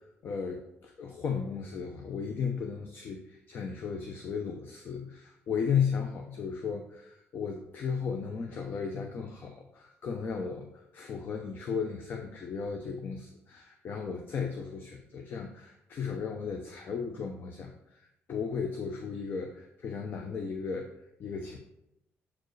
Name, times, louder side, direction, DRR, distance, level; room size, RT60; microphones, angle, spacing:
voice 1, 0.2-10.7 10.9-17.7 18.3-20.9 21.2-21.6, left 6 dB, 45° left, 4 dB, 0.6 m, -35 dB
7.2 x 4.5 x 3.2 m, 0.82 s
cardioid pair, 140°, 5 cm